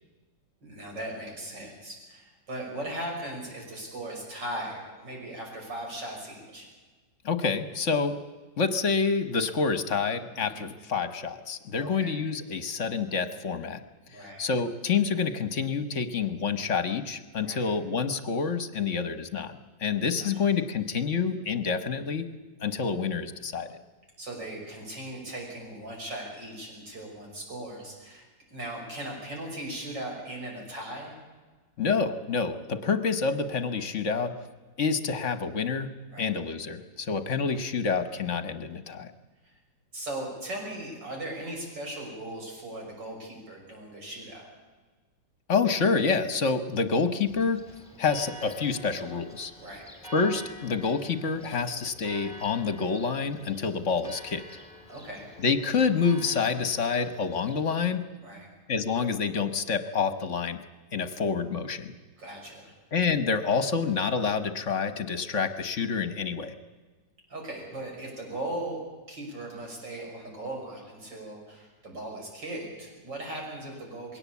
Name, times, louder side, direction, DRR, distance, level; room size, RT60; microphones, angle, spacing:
voice 1, 0.6-6.7 10.3-10.7 11.8-12.2 14.1-14.5 17.4-17.7 20.2-20.3 24.2-31.1 36.1-36.3 39.4-39.5 39.9-44.5 49.6-49.9 54.9-55.3 58.2-58.5 62.2-62.7 67.3-68.8 69.1-74.2, right 1 dB, 75° right, 0 dB, 6.6 m, -38 dB
voice 2, 7.2-8.1 8.6-13.8 14.1-22.3 22.6-23.8 31.8-34.3 34.8-35.9 36.2-39.1 45.5-47.6 48.0-49.5 50.1-54.4 55.4-58.0 58.7-60.6 60.9-61.9 62.9-66.5, left 5 dB, 45° left, 11 dB, 1.3 m, -28 dB
Church bell, 47.3-58.0, equal, 5° left, 2.8 m, -48 dB
21.5 x 17.5 x 8.4 m, 1.3 s
omnidirectional pair, 1.9 m